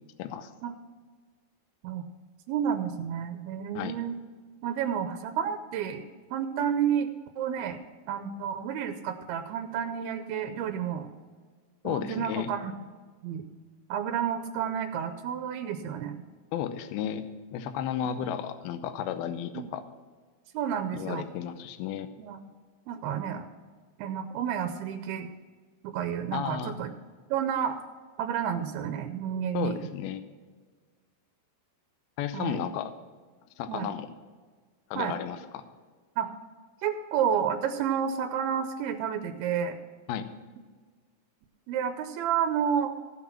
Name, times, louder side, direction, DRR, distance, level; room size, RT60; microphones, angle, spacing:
voice 1, 0.2-0.5 3.7-3.9 11.8-12.5 16.5-17.3 17.5-19.8 20.9-22.1 26.3-26.8 29.5-30.2 32.2-32.9 33.6-34.1 34.9-35.6 40.1-40.3, left 9 dB, 80° left, 10 dB, 2.5 m, -33 dB
voice 2, 2.5-4.2 4.6-6.0 6.3-7.1 7.4-7.8 8.1-11.1 11.8-12.7 13.2-13.4 13.9-16.2 19.5-19.7 20.5-21.2 22.2-22.4 22.9-23.5 24.0-25.3 25.8-26.9 27.3-27.8 28.2-29.8 32.3-32.7 33.7-33.9 35.0-35.2 36.2-36.3 36.8-39.7 41.7-42.9, right 8 dB, 80° right, 6 dB, 2.5 m, -30 dB
15.5 x 6.0 x 5.8 m, 1.5 s
omnidirectional pair, 4.6 m